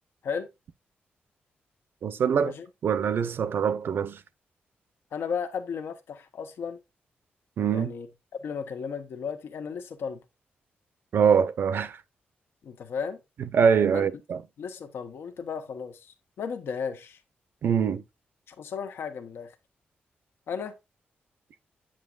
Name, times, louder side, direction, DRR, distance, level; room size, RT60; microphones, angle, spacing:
voice 1, 2.0-2.5 2.8-4.2 7.6-7.9 11.1-12.0 13.4-14.4 17.6-18.0, right 7 dB, 70° right, 0.7 m, -24 dB
voice 2, 5.1-6.8 7.7-8.1 8.4-10.2 12.6-13.2 13.9-14.1 14.6-17.2 18.5-19.5 20.5-20.8, left 6 dB, 85° left, 1.1 m, -34 dB
8.6 x 7.6 x 2.5 m
wide cardioid pair, 110°, 4 cm